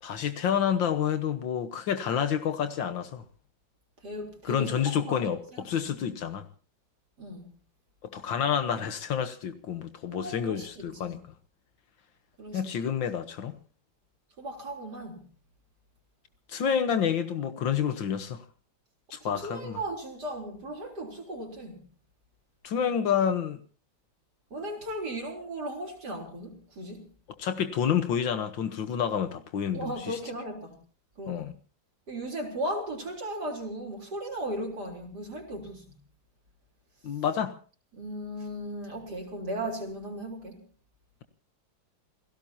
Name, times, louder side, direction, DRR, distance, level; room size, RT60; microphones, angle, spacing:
voice 1, 0.0-3.2 4.4-6.5 8.0-11.2 12.5-13.5 16.5-18.4 19.1-19.8 22.6-23.6 27.4-30.2 31.3-31.5 37.0-37.6, left 8 dB, 85° left, 1.9 m, -29 dB
voice 2, 4.0-5.9 7.2-7.5 10.1-11.2 12.4-12.7 14.4-15.2 19.2-21.8 24.5-27.1 29.7-30.8 31.2-31.5 32.1-36.0 37.9-40.6, right 1 dB, 55° right, 4.3 m, -37 dB
29.0 x 17.0 x 2.9 m
omnidirectional pair, 2.0 m